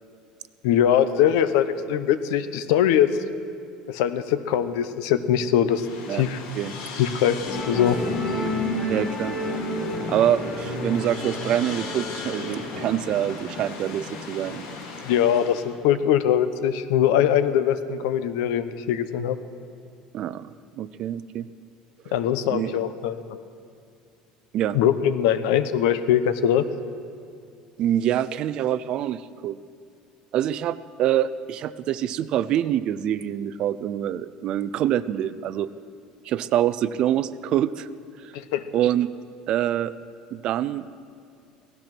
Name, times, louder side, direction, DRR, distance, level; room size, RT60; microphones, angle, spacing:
voice 1, 0.6-3.1 3.9-6.4 7.0-8.0 15.0-19.4 22.1-23.4 24.7-26.7 38.3-38.6, left 10 dB, 90° left, 12 dB, 0.8 m, -22 dB
Chantier-Amb+meuleuse(st), 5.7-15.8, left 4 dB, 70° left, 2.3 m, -37 dB
Musical instrument, 7.5-14.1, left 1 dB, 35° left, 2.3 m, -31 dB
voice 2, 8.9-9.4 10.1-14.7 20.1-20.5 20.8-21.5 22.5-22.8 24.5-24.8 27.8-29.6 30.3-35.7 36.2-37.9 38.2-38.3 38.7-39.1 39.5-39.9 40.3-40.8, right 11 dB, 35° right, 15 dB, 0.4 m, -25 dB
17.5 x 13.5 x 6.0 m, 2.4 s
cardioid pair, 180°, 2 cm